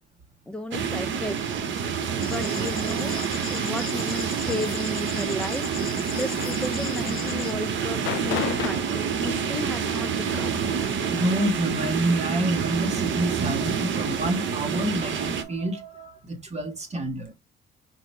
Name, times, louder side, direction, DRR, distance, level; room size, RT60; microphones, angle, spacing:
voice 1, 0.5-1.6 2.2-10.8, left 1 dB, 5° left, 0.7 m, -34 dB
sound 1, 0.7-15.4, right 7 dB, 70° right, 1.0 m, -28 dB
sound 2, 2.2-7.5, left 7 dB, 50° left, 1.4 m, -39 dB
sound 3, 6.1-12.3, left 15 dB, 75° left, 0.4 m, -38 dB
voice 2, 11.1-17.3, right 1 dB, 35° right, 1.6 m, -28 dB
5.3 x 2.8 x 3.3 m
cardioid pair, 90°, 20 cm